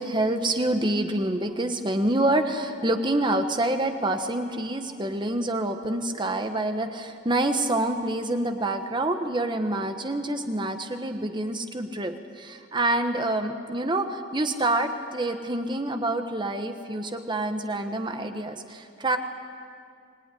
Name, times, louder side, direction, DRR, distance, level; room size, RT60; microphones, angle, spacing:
voice 1, 0.0-19.2, right 1 dB, 25° right, 6 dB, 1.2 m, -27 dB
25.0 x 19.0 x 10.0 m, 2.3 s
head